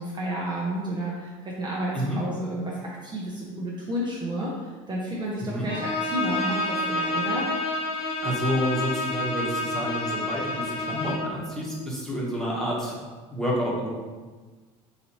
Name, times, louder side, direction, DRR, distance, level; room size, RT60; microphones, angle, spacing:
voice 1, 0.0-7.5, right 1 dB, 25° right, -5 dB, 0.7 m, -31 dB
Bowed string instrument, 5.7-11.4, left 2 dB, 35° left, 0.9 m, -29 dB
voice 2, 7.9-13.0 13.3-13.9, equal, 5° left, -5 dB, 1.2 m, -29 dB
4.0 x 2.6 x 3.0 m, 1.4 s
hypercardioid pair, 80°, 17 cm